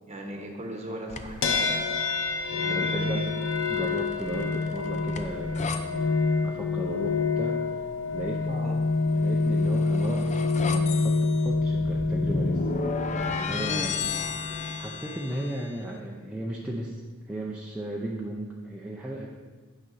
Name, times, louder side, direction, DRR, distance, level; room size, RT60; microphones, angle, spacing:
voice 1, 0.0-1.9 2.6-3.2 8.5-8.7 13.5-13.9, equal, 30° right, 1 dB, 1.1 m, -37 dB
sound 1, 1.1-1.5 3.4-5.8 9.3-15.7, left 4 dB, 35° left, 0.5 m, -34 dB
sound 2, 1.4-14.9, left 3 dB, 65° left, 0.8 m, -27 dB
voice 2, 2.5-3.2 3.7-6.2 6.4-7.7 8.1-8.5 9.1-12.7 13.0-13.9 14.5-17.0 17.3-19.3, right 1 dB, 5° right, -4 dB, 0.6 m, -35 dB
9.4 x 6.1 x 4.1 m, 1.4 s
head